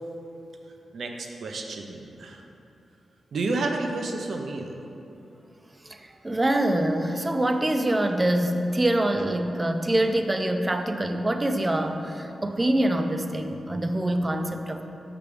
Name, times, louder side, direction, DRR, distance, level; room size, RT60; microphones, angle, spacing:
voice 1, 0.9-2.4 3.3-4.8, right 3 dB, 75° right, 3 dB, 0.6 m, -30 dB
voice 2, 5.8-14.8, right 1 dB, 25° right, 6 dB, 0.5 m, -25 dB
6.8 x 5.9 x 3.3 m, 2.8 s
cardioid pair, 70°, 0 cm